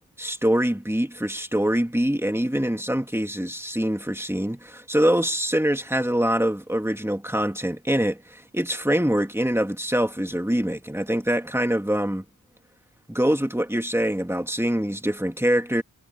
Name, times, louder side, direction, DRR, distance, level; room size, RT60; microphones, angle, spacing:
voice 1, 0.2-12.2 13.1-15.8, equal, 5° right, 2.1 m, -24 dB
wide cardioid pair, 50°, 37 cm